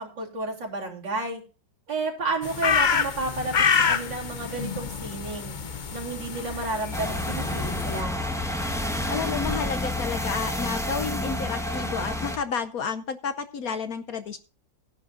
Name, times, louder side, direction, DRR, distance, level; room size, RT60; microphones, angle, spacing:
voice 1, 0.0-1.4 1.9-3.5 3.8-5.5 5.9-8.2, right 3 dB, 75° right, -1 dB, 4.1 m, -31 dB
sound 1, 2.4-8.0, left 6 dB, 90° left, 0.4 m, -27 dB
sound 2, 6.9-12.4, left 1 dB, ahead, 1.5 m, -29 dB
voice 2, 9.1-14.4, left 6 dB, 60° left, 10 dB, 1.1 m, -31 dB
17.0 x 10.5 x 2.6 m, 0.35 s
omnidirectional pair, 2.0 m